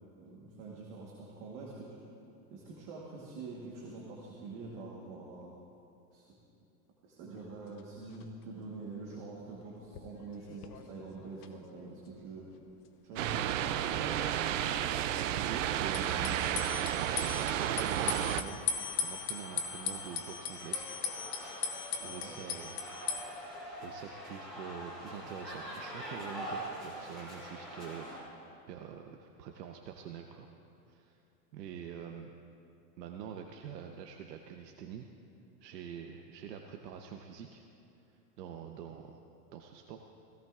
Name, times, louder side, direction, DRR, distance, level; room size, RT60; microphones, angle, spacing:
voice 1, 0.2-1.9 2.5-5.5 6.1-6.2 7.0-12.5 13.0-14.1 22.0-22.3, right 3 dB, 30° right, -4 dB, 1.3 m, -46 dB
sound 1, 7.4-7.5 7.8-7.9 8.1-8.2 8.9-9.3 9.6-11.5 11.8-11.9 15.9-23.2, left 7 dB, 70° left, 1.1 m, -39 dB
sound 2, 13.2-18.4, right 11 dB, 55° right, 0.5 m, -32 dB
sound 3, 13.6-28.2, equal, ahead, 2.4 m, -46 dB
voice 2, 15.1-16.4 16.8-18.6 18.9-20.9 21.9-22.8 23.8-28.1 28.7-30.5 30.9-31.2 31.5-32.4 33.0-35.1 35.6-37.6 38.1-39.2 39.5-40.0, right 8 dB, 85° right, 3 dB, 0.9 m, -45 dB
17.0 x 16.5 x 2.5 m, 2.7 s
supercardioid pair, 175°, 48 cm